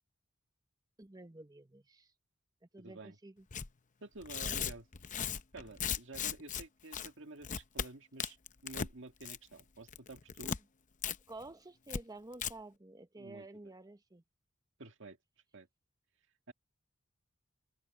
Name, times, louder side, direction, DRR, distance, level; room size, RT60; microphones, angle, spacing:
voice 1, 1.0-2.1 2.7-3.4 11.3-14.2, right 2 dB, 20° right, 1.0 m, -51 dB
voice 2, 2.8-3.2 4.0-4.9 5.5-8.4 8.6-10.6 13.2-13.7 14.8-15.2 15.5-15.7 16.5-16.6, right 2 dB, 65° right, 2.1 m, -50 dB
Tearing, 3.5-3.7 4.2-6.6 6.9-7.1 7.4-7.9 8.2-8.9 9.2-9.6 9.9-10.6 11.0-11.2 11.4-11.5 11.9-12.0 12.3-12.5, left 7 dB, 40° left, 0.7 m, -37 dB
open air
head